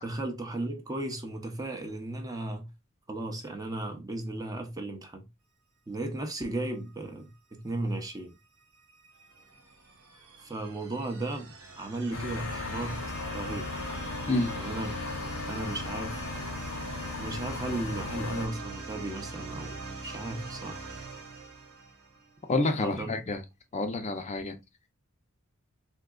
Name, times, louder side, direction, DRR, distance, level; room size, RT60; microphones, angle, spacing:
voice 1, 0.0-2.7 3.1-5.3 5.9-8.3 10.4-13.0 13.3-13.7 14.5-14.9 15.5-16.2 17.2-20.9 22.7-23.1, right 2 dB, 15° right, 0.5 m, -35 dB
sound 1, 8.6-22.4, right 3 dB, 80° right, 1.2 m, -42 dB
sound 2, 12.1-18.5, left 4 dB, 70° left, 0.6 m, -37 dB
voice 2, 22.5-23.4 23.7-24.6, left 2 dB, 30° left, 0.4 m, -28 dB
3.6 x 2.8 x 2.3 m
head